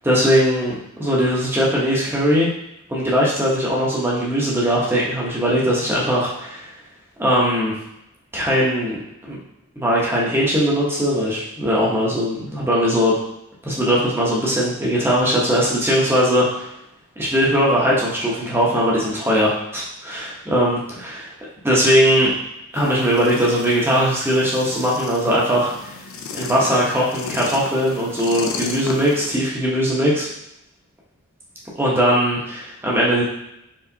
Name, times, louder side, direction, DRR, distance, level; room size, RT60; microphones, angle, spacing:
voice 1, 0.0-2.5 2.9-6.7 7.2-7.7 8.3-9.0 9.2-9.4 9.8-13.2 13.6-16.7 17.2-21.3 21.6-22.3 22.7-25.9 26.3-30.3 31.8-33.2, equal, 10° right, -6 dB, 0.9 m, -20 dB
sound 1, 22.7-29.3, left 4 dB, 65° left, 0.4 m, -34 dB
4.5 x 3.2 x 2.7 m, 0.83 s
head